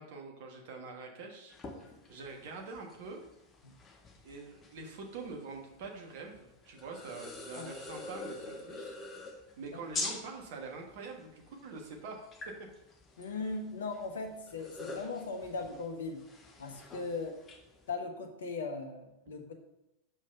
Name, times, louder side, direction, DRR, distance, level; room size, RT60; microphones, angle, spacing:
voice 1, 0.0-1.5 2.1-3.2 4.2-8.9 9.6-12.2, right 4 dB, 50° right, 2 dB, 1.5 m, -45 dB
sound 1, 1.5-17.9, left 3 dB, 20° left, 1.1 m, -46 dB
voice 2, 13.2-16.3 16.6-17.4 17.9-19.5, left 3 dB, 65° left, 5 dB, 1.1 m, -38 dB
6.3 x 5.4 x 5.3 m, 0.90 s
figure-of-eight pair, 90°, 0 cm